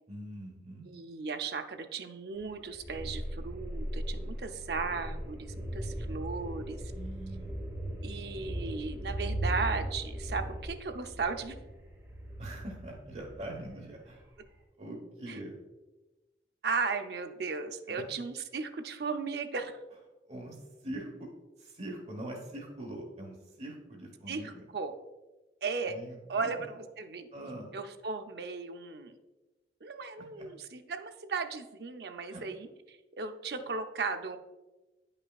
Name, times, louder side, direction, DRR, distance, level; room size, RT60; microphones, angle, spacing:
voice 1, 0.1-0.9 6.9-7.6 12.4-14.3 14.8-15.5 17.9-18.0 20.3-21.3 21.6-24.6 25.9-26.6 27.3-27.7 30.2-30.5 32.3-32.4, right 1 dB, 35° right, 0 dB, 1.0 m, -43 dB
voice 2, 0.9-6.8 8.0-11.6 15.3-15.4 16.6-19.8 24.3-25.0 25.6-26.0 26.3-27.3 27.7-29.1 29.8-32.7 33.2-34.4, right 4 dB, 60° right, 7 dB, 0.5 m, -36 dB
sound 1, 2.4-13.7 14.1-14.3, right 1 dB, 15° right, 1.3 m, -38 dB
9.6 x 5.4 x 2.3 m, 1.1 s
head